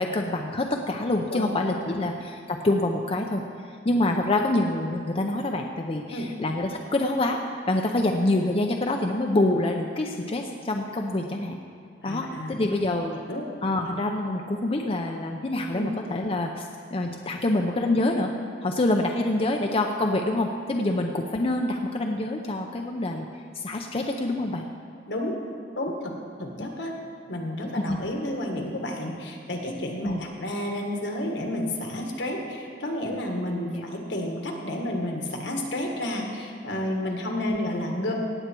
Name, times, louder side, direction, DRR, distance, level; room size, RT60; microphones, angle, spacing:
voice 1, 0.0-3.4 3.8-7.4 7.7-11.6 12.0-13.2 13.6-18.3 18.6-23.3 23.5-24.7 26.6-26.7 27.9-28.0 30.0-30.2 33.7-33.8, left 2 dB, 35° left, 2 dB, 0.6 m, -26 dB
voice 2, 12.0-12.6 13.3-13.5 15.7-15.9 25.1-25.4 25.8-26.1 26.4-27.0 27.3-38.2, left 1 dB, 70° left, 1 dB, 1.8 m, -31 dB
17.5 x 8.0 x 4.6 m, 2.4 s
head